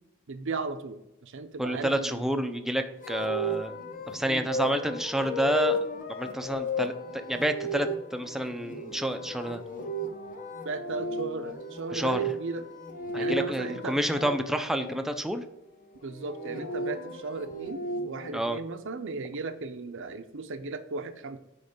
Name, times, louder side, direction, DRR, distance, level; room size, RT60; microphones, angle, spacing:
voice 1, 0.3-2.3 10.6-12.7 13.2-14.0 16.0-21.4, right 4 dB, 65° right, 10 dB, 0.7 m, -36 dB
voice 2, 1.6-3.8 4.1-5.8 6.1-9.6 11.9-12.2 13.1-15.4 18.3-18.6, right 1 dB, ahead, 7 dB, 0.5 m, -29 dB
sound 1, 3.0-14.9 16.1-18.3, equal, 40° left, 1.0 m, -34 dB
9.3 x 3.2 x 5.2 m, 0.93 s
head